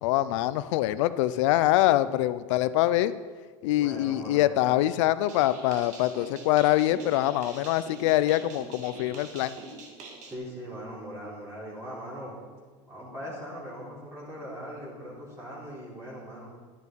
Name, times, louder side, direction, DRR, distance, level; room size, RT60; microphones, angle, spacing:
voice 1, 0.0-3.1 3.6-9.6, left 14 dB, 75° left, 15 dB, 0.6 m, -24 dB
voice 2, 3.7-4.7 10.3-12.4 12.9-16.5, equal, 15° right, -7 dB, 4.0 m, -40 dB
sound 1, 5.3-10.4, right 3 dB, 50° right, 2.1 m, -45 dB
12.0 x 8.6 x 4.6 m, 1.5 s
supercardioid pair, 110°, 16 cm